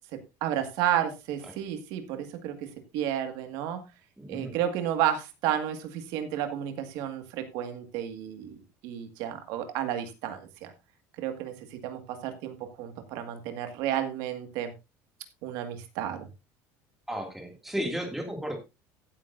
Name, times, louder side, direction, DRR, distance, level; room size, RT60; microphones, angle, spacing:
voice 1, 0.1-2.6 2.9-3.8 4.3-10.7 11.2-14.7 15.4-16.2, right 10 dB, 70° right, 7 dB, 1.9 m, -32 dB
voice 2, 4.2-4.5 17.1-18.6, equal, 5° right, 3 dB, 2.3 m, -33 dB
15.5 x 9.1 x 2.6 m, 0.25 s
cardioid pair, 165°, 7 cm